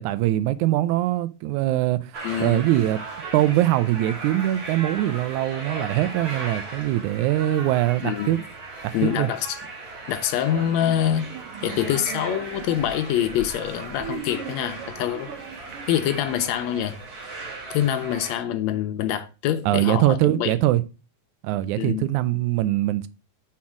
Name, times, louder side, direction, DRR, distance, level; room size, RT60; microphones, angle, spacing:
voice 1, 0.0-2.1 2.4-3.0 3.3-8.4 8.8-9.3 19.6-20.8 21.4-23.1, right 14 dB, 90° right, 2.0 m, -22 dB
sound 1, 2.1-18.4, right 3 dB, 50° right, 2.6 m, -37 dB
voice 2, 2.2-2.7 8.0-8.4 8.9-9.6 10.1-11.3 11.6-15.3 15.9-17.0 17.7-20.5 21.8-22.1, left 11 dB, 80° left, 1.7 m, -25 dB
sound 2, 10.5-16.9, right 7 dB, 70° right, 1.3 m, -40 dB
5.6 x 4.4 x 6.0 m
omnidirectional pair, 3.3 m